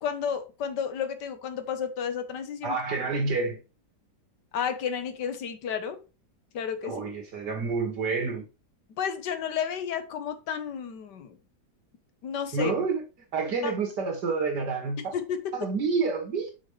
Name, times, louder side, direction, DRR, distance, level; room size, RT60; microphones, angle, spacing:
voice 1, 0.0-2.8 4.5-6.0 6.5-7.0 9.0-11.4 12.2-12.8 13.6-13.7 15.0-15.7, left 7 dB, 90° left, 1.6 m, -32 dB
voice 2, 2.6-3.6 6.8-8.5 12.5-13.0 13.3-15.1 15.5-16.5, right 4 dB, 80° right, 2.6 m, -28 dB
6.3 x 6.3 x 3.2 m
omnidirectional pair, 1.8 m